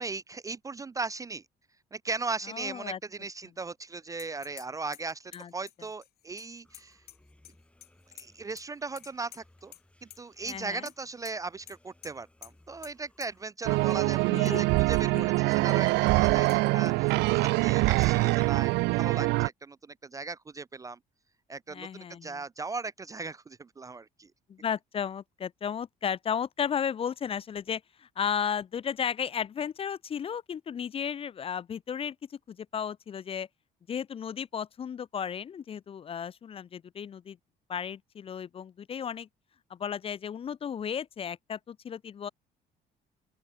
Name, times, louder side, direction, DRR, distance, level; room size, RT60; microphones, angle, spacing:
voice 1, 0.0-1.4 1.9-7.0 8.1-9.7 10.0-21.0 21.5-24.3, right 3 dB, 20° right, 0.4 m, -38 dB
voice 2, 2.5-3.0 5.3-5.5 10.5-10.9 14.3-14.8 15.1-15.3 21.7-22.4 24.5-33.5 33.9-37.4 37.7-39.3 39.7-42.3, left 7 dB, 35° left, 0.5 m, -34 dB
sound 1, 4.2-4.7 4.9-7.5 7.8-8.6 9.0-9.8 10.1-10.6 10.8-10.9 11.2-11.3 11.7-11.8 12.0-12.1 12.4-12.5 12.8-12.9 13.2-13.3 14.2-14.6 14.9-15.0 15.5-15.6 16.5-16.6 18.0-18.1, left 14 dB, 70° left, 2.5 m, -49 dB
sound 2, 6.6-13.5, left 1 dB, 5° left, 5.9 m, -63 dB
sound 3, 13.6-19.5, right 23 dB, 90° right, 0.4 m, -24 dB
open air
cardioid pair, 110°, 17 cm